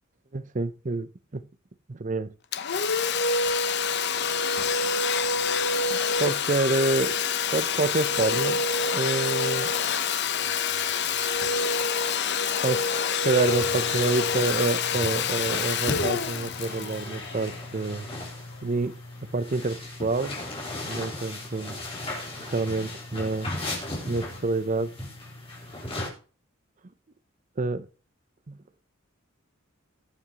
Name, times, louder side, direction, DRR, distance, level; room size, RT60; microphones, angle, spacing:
voice 1, 0.3-1.4 1.9-2.3 5.9-7.2 7.5-8.6 8.9-9.7 12.6-12.9 13.2-18.1 18.6-19.0 19.3-20.4 20.8-21.8 22.4-23.5 24.1-24.9 27.6-27.8 28.5-28.6, right 3 dB, 40° right, 0.7 m, -27 dB
Domestic sounds home sounds, 2.5-18.0, left 5 dB, 55° left, 1.0 m, -26 dB
sound 1, 13.4-26.1, left 2 dB, 30° left, 4.3 m, -36 dB
19.5 x 7.9 x 3.0 m
head